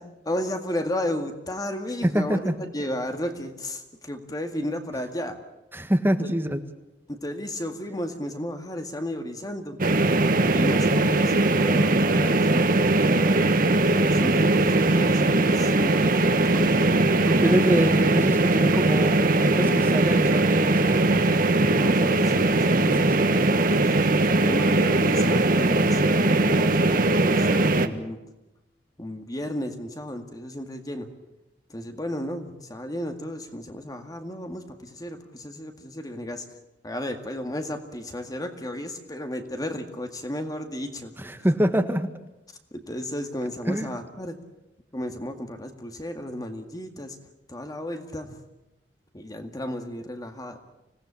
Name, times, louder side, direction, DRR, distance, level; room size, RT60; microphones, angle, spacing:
voice 1, 0.3-5.4 7.1-9.8 10.3-13.6 13.9-17.0 17.5-17.6 19.6-20.2 21.2-22.7 23.5-28.2 29.0-31.1 31.7-36.5 36.8-41.1 42.7-44.4 44.9-47.2 47.5-48.4 49.1-50.6, left 1 dB, 20° left, 6 dB, 2.0 m, -34 dB
voice 2, 2.0-2.5 5.7-6.6 17.3-21.1 22.8-23.1 41.2-42.1 43.7-43.9, equal, 15° right, 7 dB, 1.8 m, -25 dB
sound 1, 9.8-27.9, right 2 dB, 55° right, 1.5 m, -20 dB
26.0 x 18.0 x 8.6 m, 0.95 s
head